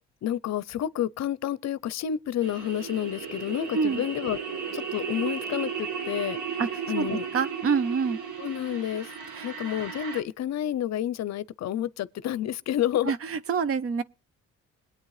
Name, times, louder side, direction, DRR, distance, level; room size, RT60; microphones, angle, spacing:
voice 1, 0.2-4.4 4.7-6.4 6.9-7.2 8.4-9.1 9.4-13.1, left 11 dB, 60° left, 0.6 m, -29 dB
sound 1, 2.4-10.2, right 6 dB, 75° right, 1.7 m, -35 dB
voice 2, 7.3-8.2 9.3-9.5 13.1-14.0, right 5 dB, 50° right, 0.8 m, -26 dB
21.5 x 8.9 x 3.2 m
cardioid pair, 90°, 30 cm